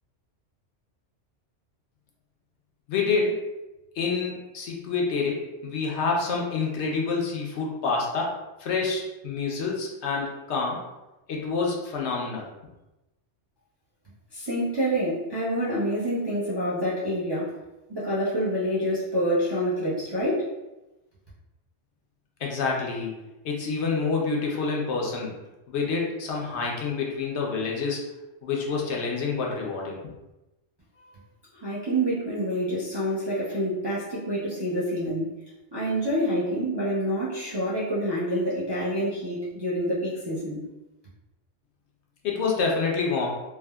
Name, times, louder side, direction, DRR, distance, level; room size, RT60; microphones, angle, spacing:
voice 1, 2.9-3.4 4.0-10.8 11.3-12.4 22.4-23.1 23.4-25.3 25.7-28.1 28.4-30.0 42.2-43.3, left 4 dB, 70° left, -1 dB, 0.8 m, -27 dB
voice 2, 14.3-17.6 17.9-20.5 31.6-35.4 35.7-40.6, equal, 35° right, -9 dB, 0.4 m, -27 dB
3.4 x 2.0 x 2.2 m, 1.0 s
omnidirectional pair, 1.2 m